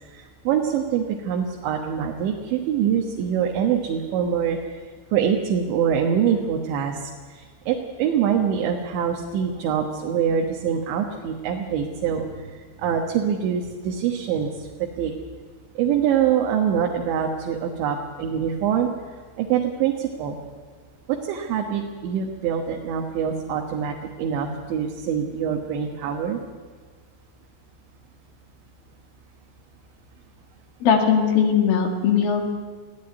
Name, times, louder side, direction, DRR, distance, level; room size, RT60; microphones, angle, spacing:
voice 1, 0.1-4.8 5.1-12.4 12.8-14.7 15.0-15.1 15.8-18.9 19.4-20.4 21.1-26.4, right 8 dB, 80° right, 1 dB, 3.6 m, -24 dB
voice 2, 30.8-32.5, left 7 dB, 60° left, 3 dB, 3.6 m, -19 dB
20.5 x 14.5 x 9.6 m, 1.5 s
omnidirectional pair, 5.2 m